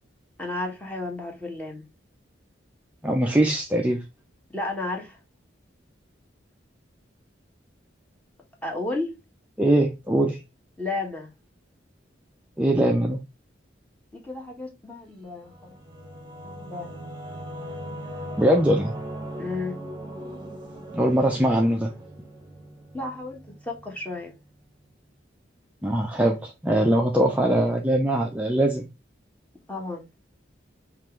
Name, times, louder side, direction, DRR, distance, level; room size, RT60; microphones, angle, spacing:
voice 1, 0.4-1.9 4.5-5.2 8.6-9.1 10.8-11.3 14.1-15.8 16.4-17.1 19.4-19.7 22.9-24.3 29.7-30.1, left 2 dB, 10° left, 1.1 m, -33 dB
voice 2, 3.0-4.0 9.6-10.4 12.6-13.2 18.4-18.9 20.9-21.9 25.8-28.9, right 1 dB, 5° right, 0.5 m, -21 dB
Singing / Musical instrument, 15.3-24.4, right 1 dB, 25° right, 0.8 m, -39 dB
5.5 x 2.5 x 3.0 m
head